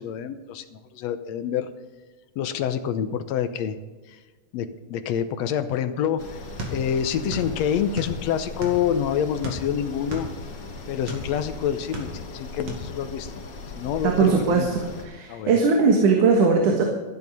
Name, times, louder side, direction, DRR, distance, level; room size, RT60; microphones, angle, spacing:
voice 1, 0.0-1.7 2.4-3.8 4.1-4.2 4.5-6.4 6.7-10.3 10.9-13.3 13.7-14.8 15.3-15.6, left 9 dB, 70° left, 9 dB, 1.8 m, -27 dB
sound 1, 6.2-15.0, left 3 dB, 45° left, 1.8 m, -38 dB
sound 2, 6.6-7.5 7.8-8.9 9.4-11.3 11.7-12.4 12.7-12.9, right 1 dB, 55° right, 3.4 m, -34 dB
voice 2, 14.0-14.8 15.1-16.8, right 5 dB, 75° right, 1 dB, 3.0 m, -19 dB
14.0 x 11.0 x 5.4 m, 1.3 s
omnidirectional pair, 3.6 m